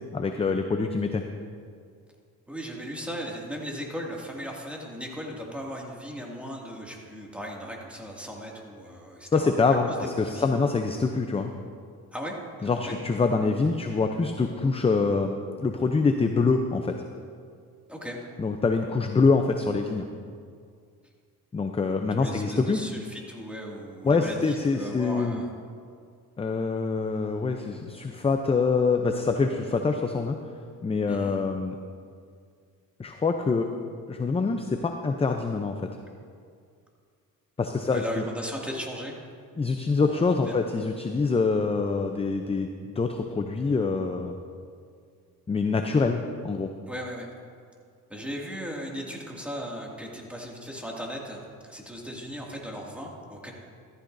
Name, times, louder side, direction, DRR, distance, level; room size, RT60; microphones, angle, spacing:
voice 1, 0.1-1.2 9.3-9.9 10.2-11.5 12.6-16.9 18.4-20.1 21.5-22.8 24.0-25.4 26.4-30.4 30.8-31.8 33.0-33.7 34.1-35.8 37.6-38.2 39.6-44.4 45.5-46.7, left 4 dB, 15° left, 5 dB, 0.5 m, -25 dB
voice 2, 2.5-9.5 9.9-10.0 10.2-10.5 12.1-13.0 17.9-18.2 22.2-25.5 31.1-31.4 37.8-39.1 40.0-40.6 46.9-47.3 48.1-53.5, equal, 5° right, -2 dB, 2.2 m, -37 dB
14.5 x 14.0 x 2.6 m, 2.2 s
cardioid pair, 100°, 36 cm